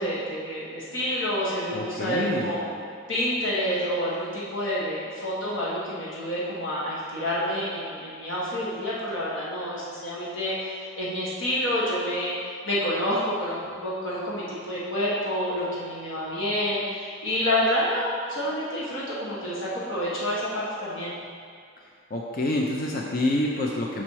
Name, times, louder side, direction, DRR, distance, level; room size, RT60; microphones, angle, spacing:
voice 1, 0.0-2.6 3.1-12.3 12.6-21.1, equal, 70° left, -8 dB, 1.4 m, -28 dB
voice 2, 1.7-2.5 22.1-24.0, left 1 dB, 45° left, -1 dB, 0.5 m, -27 dB
6.2 x 4.3 x 6.2 m, 2.2 s
head